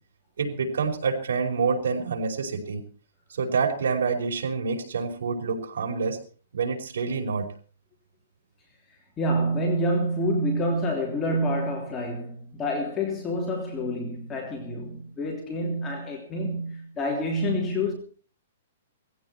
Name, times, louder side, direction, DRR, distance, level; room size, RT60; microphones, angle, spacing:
voice 1, 0.4-2.8 3.3-6.2 6.5-7.5, right 5 dB, 90° right, 5.3 m, -27 dB
voice 2, 9.2-17.9, equal, 15° left, 3.2 m, -27 dB
19.0 x 15.5 x 4.4 m
hypercardioid pair, 165°, 0 cm